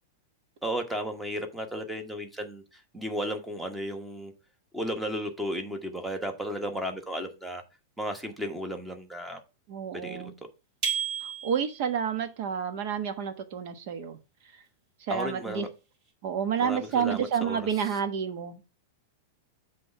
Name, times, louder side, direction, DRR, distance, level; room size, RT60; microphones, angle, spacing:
voice 1, 0.6-4.3 4.7-7.6 8.0-9.4 9.9-10.3 15.1-15.7 16.6-17.7, equal, 5° right, 5 dB, 1.1 m, -34 dB
voice 2, 9.7-10.3 11.2-14.2 15.1-15.7 16.2-18.8, right 7 dB, 50° right, 9 dB, 1.2 m, -30 dB
sound 1, 10.8-11.9, right 7 dB, 35° right, 2.0 m, -31 dB
7.8 x 3.3 x 5.5 m, 0.30 s
supercardioid pair, 150°, 0 cm